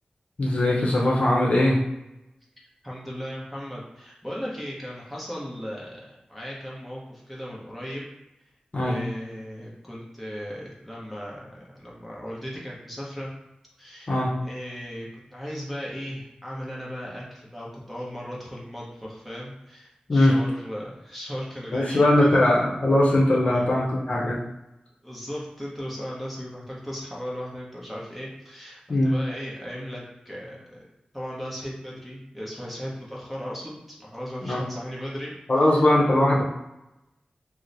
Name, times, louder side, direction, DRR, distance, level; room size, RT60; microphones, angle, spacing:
voice 1, 0.4-1.8 8.7-9.0 14.1-14.3 20.1-20.3 21.7-24.4 28.9-29.1 34.4-34.6 35.5-36.4, left 1 dB, 55° left, -4 dB, 0.7 m, -20 dB
voice 2, 2.8-8.0 8.8-13.3 13.8-22.5 23.5-23.7 25.0-30.8 31.1-35.9, equal, ahead, -5 dB, 0.8 m, -37 dB
3.0 x 2.0 x 3.9 m, 0.90 s
wide cardioid pair, 90°, 3 cm